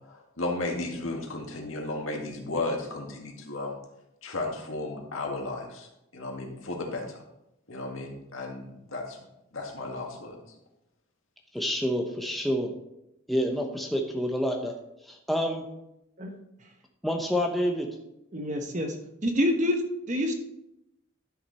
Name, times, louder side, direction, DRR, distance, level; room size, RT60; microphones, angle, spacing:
voice 1, 0.0-3.8 4.2-7.2 7.7-9.2 9.5-10.4, left 2 dB, 80° left, 1 dB, 2.1 m, -34 dB
voice 2, 11.5-12.7 13.3-14.7 15.0-15.6 17.0-17.9, equal, ahead, 1 dB, 0.9 m, -28 dB
voice 3, 18.3-18.9 19.2-19.8 20.1-20.4, left 1 dB, 35° right, 4 dB, 1.1 m, -26 dB
11.0 x 6.6 x 4.2 m, 0.85 s
head